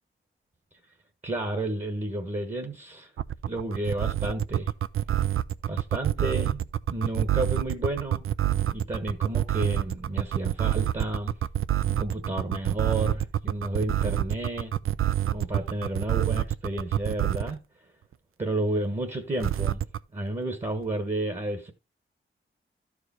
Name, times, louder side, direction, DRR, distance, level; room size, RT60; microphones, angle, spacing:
voice 1, 1.2-3.1 3.4-4.7 5.7-8.2 8.7-11.3 11.9-14.7 15.3-17.6 18.4-19.8 20.1-21.7, right 1 dB, 30° right, 1.3 m, -31 dB
sound 1, 3.2-17.6 19.4-20.0, right 12 dB, 80° right, 0.5 m, -26 dB
12.5 x 4.9 x 4.2 m
wide cardioid pair, 115°, 21 cm